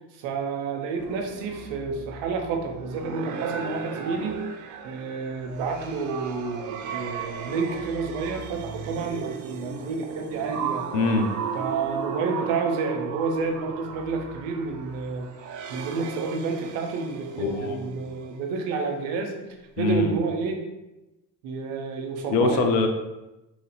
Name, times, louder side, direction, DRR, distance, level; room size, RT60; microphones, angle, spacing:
voice 1, 0.1-4.4 4.8-10.9 11.5-15.3 15.7-20.6 21.4-22.7, right 4 dB, 60° right, 3 dB, 0.8 m, -29 dB
sound 1, 1.0-18.3, right 6 dB, 40° right, 0.4 m, -36 dB
voice 2, 10.9-11.3 17.4-17.9 19.8-20.1 22.3-22.9, left 4 dB, 75° left, 5 dB, 0.6 m, -23 dB
2.9 x 2.4 x 4.0 m, 0.99 s
hypercardioid pair, 55°, 50 cm